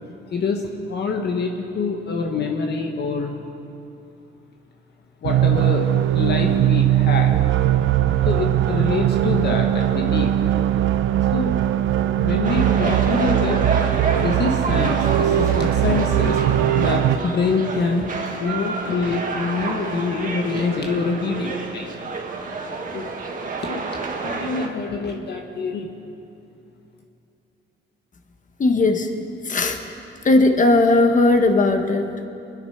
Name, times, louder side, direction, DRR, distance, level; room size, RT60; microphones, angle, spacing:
voice 1, 0.3-3.3 5.2-7.4 8.2-10.4 11.3-11.5 12.2-13.6 14.2-21.9 22.4-23.1 23.6-26.0, left 4 dB, 55° left, 2 dB, 1.4 m, -26 dB
sound 1, 5.2-17.2, right 12 dB, 80° right, 0.7 m, -20 dB
sound 2, 12.4-24.7, right 4 dB, 45° right, 1.9 m, -28 dB
voice 2, 28.6-29.1 29.4-29.8 30.2-32.3, left 2 dB, 40° left, 6 dB, 1.5 m, -17 dB
23.5 x 10.0 x 5.8 m, 2.7 s
cardioid pair, 90°, 20 cm